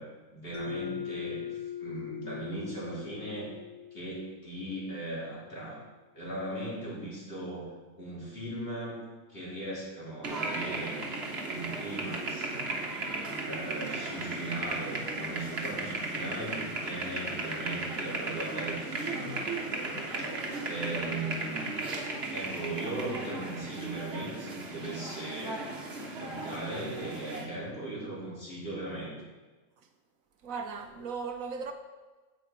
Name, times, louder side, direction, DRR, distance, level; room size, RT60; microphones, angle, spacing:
voice 1, 0.0-3.5 3.9-5.8 6.1-9.0 9.3-11.0 11.5-12.7 13.1-19.4 20.1-20.2 20.7-21.9 22.3-25.6 26.2-29.1, right 1 dB, 40° left, 3.5 m, -38 dB
Mallet percussion, 0.5-5.1, left 8 dB, 25° left, 1.0 m, -41 dB
sound 1, 10.2-27.5, right 2 dB, 45° right, 1.5 m, -36 dB
voice 2, 30.4-31.7, right 5 dB, 70° right, 1.3 m, -37 dB
9.1 x 8.5 x 5.0 m
omnidirectional pair, 1.5 m